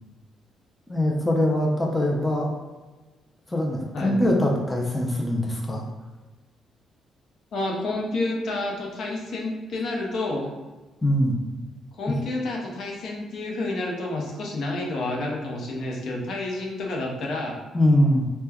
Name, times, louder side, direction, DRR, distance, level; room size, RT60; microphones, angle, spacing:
voice 1, 0.9-2.5 3.5-5.8 11.0-11.4 12.1-12.2 17.7-18.3, left 1 dB, 15° left, -1 dB, 0.5 m, -22 dB
voice 2, 7.5-10.5 12.0-17.6, left 2 dB, 65° left, -1 dB, 0.6 m, -29 dB
3.2 x 2.1 x 2.2 m, 1.2 s
cardioid pair, 90°, 0 cm